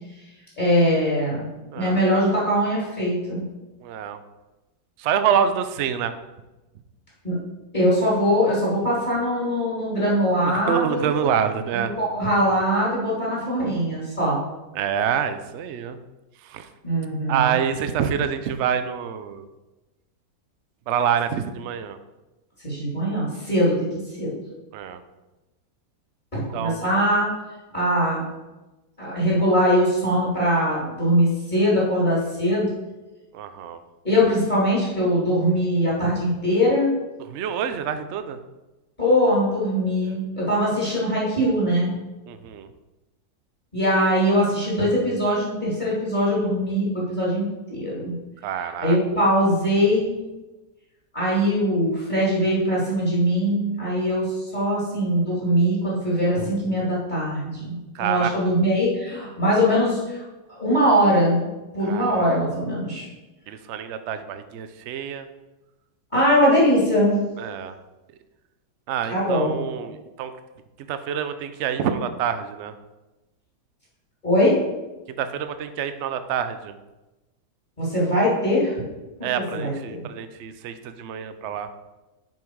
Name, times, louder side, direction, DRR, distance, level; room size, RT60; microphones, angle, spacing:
voice 1, 0.6-3.5 7.2-7.4 7.7-11.1 11.7-14.4 16.8-17.5 22.6-24.4 26.3-27.3 27.7-28.2 29.0-32.7 34.0-36.9 39.0-41.9 43.7-48.1 48.6-50.1 51.1-60.2 60.5-61.5 61.7-63.1 66.1-67.2 69.1-69.6 74.2-74.6 77.8-78.8 79.5-80.0, equal, 25° left, -7 dB, 2.7 m, -22 dB
voice 2, 1.7-2.0 3.8-4.2 5.0-6.1 10.4-11.9 14.7-16.0 16.4-16.7 17.3-19.5 20.9-22.0 24.7-25.0 26.5-26.9 33.3-33.8 37.3-38.4 42.3-42.7 48.4-49.0 57.9-58.3 61.8-62.4 63.5-65.3 67.4-67.7 68.9-70.3 70.9-72.7 75.2-76.8 79.2-81.7, right 8 dB, 70° right, 10 dB, 0.6 m, -26 dB
7.5 x 5.6 x 4.6 m, 1.1 s
omnidirectional pair, 1.8 m